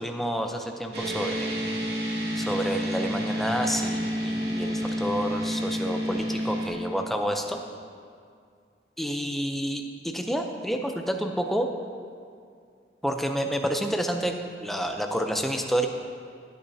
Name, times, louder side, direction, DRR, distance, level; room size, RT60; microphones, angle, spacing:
voice 1, 0.0-1.5 2.4-7.6 9.0-11.7 13.0-15.9, equal, ahead, 4 dB, 0.5 m, -29 dB
sound 1, 0.9-6.7, equal, 70° right, 2.1 m, -29 dB
16.0 x 8.8 x 2.8 m, 2.2 s
head